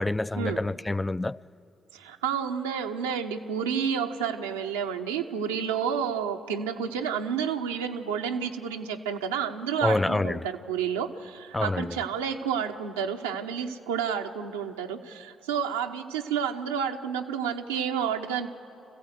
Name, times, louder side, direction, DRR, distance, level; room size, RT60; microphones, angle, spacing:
voice 1, 0.0-1.4 9.8-10.5 11.5-12.0, left 2 dB, 20° left, 0.4 m, -27 dB
voice 2, 1.9-18.5, right 7 dB, 90° right, 0.9 m, -30 dB
25.5 x 15.5 x 8.1 m
hypercardioid pair, 45°, 0 cm